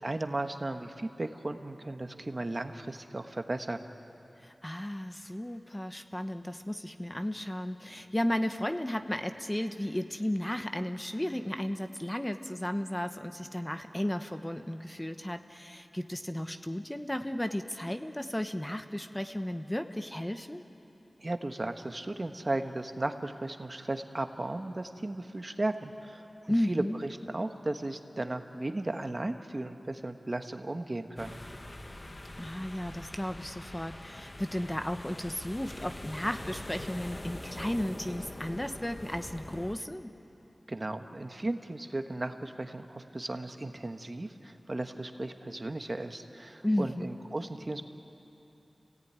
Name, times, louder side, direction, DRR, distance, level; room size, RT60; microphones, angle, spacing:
voice 1, 0.0-3.8 21.2-31.4 40.7-47.8, right 2 dB, 40° right, 6 dB, 1.3 m, -35 dB
voice 2, 4.4-20.6 26.5-27.0 32.4-40.1 46.6-47.1, left 1 dB, 15° left, 7 dB, 1.0 m, -34 dB
sound 1, 31.2-39.8, left 1 dB, 35° left, 1.3 m, -44 dB
28.5 x 17.5 x 9.6 m, 3.0 s
wide cardioid pair, 65°, 0 cm